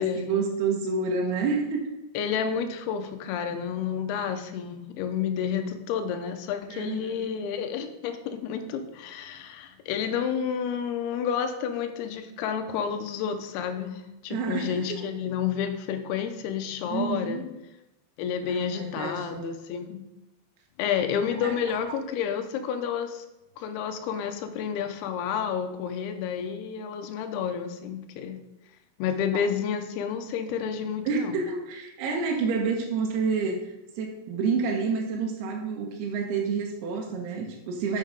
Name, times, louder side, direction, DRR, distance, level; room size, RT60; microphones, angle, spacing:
voice 1, 0.0-2.0 6.7-7.3 14.3-15.0 16.9-17.5 18.4-19.6 21.3-22.0 31.1-38.0, right 4 dB, 75° right, 1 dB, 2.9 m, -29 dB
voice 2, 2.1-17.4 18.2-20.0 20.8-23.3 23.6-28.4 29.0-31.4, left 7 dB, 85° left, 6 dB, 2.7 m, -30 dB
7.3 x 6.5 x 5.1 m, 0.94 s
omnidirectional pair, 4.7 m